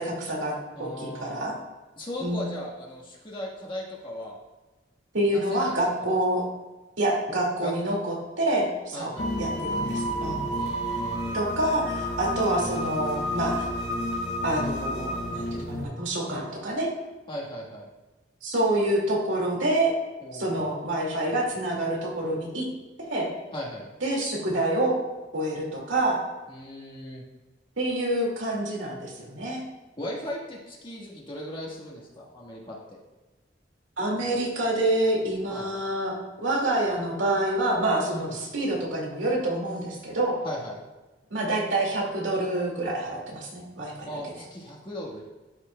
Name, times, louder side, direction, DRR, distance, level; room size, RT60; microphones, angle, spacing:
voice 1, 0.0-1.6 2.2-2.4 5.1-6.4 7.0-9.1 9.4-10.5 11.3-13.7 14.4-16.9 18.4-19.9 20.3-22.6 23.0-23.3 24.0-25.0 25.3-26.2 27.8-29.6 34.0-40.4 41.3-44.1, right 1 dB, 85° right, -2 dB, 2.2 m, -27 dB
voice 2, 0.7-1.4 2.0-4.4 5.3-5.7 7.6-7.7 8.9-9.3 10.6-11.4 17.3-17.9 20.2-20.7 23.5-23.9 26.5-27.2 30.0-33.0 35.5-35.7 38.1-38.4 40.4-40.8 44.1-45.2, left 1 dB, 25° left, -3 dB, 1.4 m, -37 dB
sound 1, 9.2-15.8, equal, 80° left, 2.0 m, -30 dB
12.5 x 5.9 x 2.2 m, 1.2 s
head